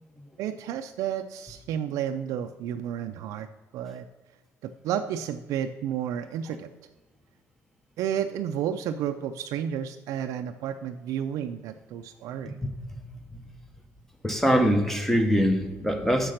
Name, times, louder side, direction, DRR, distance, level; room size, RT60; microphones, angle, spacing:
voice 1, 0.4-3.5 3.7-4.1 4.6-6.7 8.0-12.6, right 9 dB, 75° right, 0.4 m, -31 dB
voice 2, 14.2-16.3, equal, 5° left, 0.7 m, -23 dB
6.5 x 5.8 x 6.4 m
cardioid pair, 160°, 6 cm